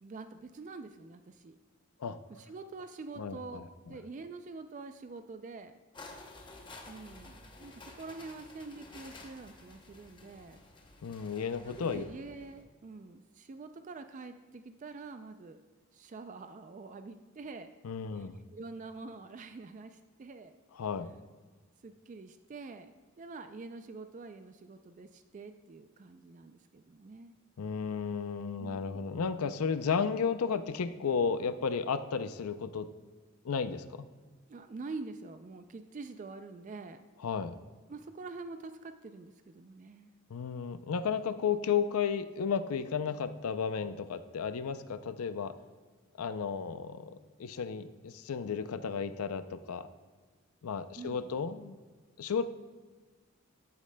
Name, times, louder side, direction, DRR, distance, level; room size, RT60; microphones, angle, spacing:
voice 1, 0.0-1.6 2.3-5.7 6.9-10.6 11.7-15.6 15.9-17.7 18.1-20.5 21.8-27.3 28.6-29.1 34.5-37.0 37.9-40.1 51.0-51.2, right 3 dB, 35° right, 9 dB, 0.3 m, -46 dB
voice 2, 3.2-3.7 11.0-12.0 17.8-18.4 20.8-21.1 27.6-32.9 33.4-34.1 37.2-37.6 40.3-45.5 46.2-49.9 50.6-51.8 52.2-52.5, left 6 dB, 85° left, 12 dB, 0.5 m, -33 dB
sound 1, 5.9-12.6, left 2 dB, 20° left, 0.7 m, -52 dB
13.5 x 8.2 x 2.2 m, 1.3 s
head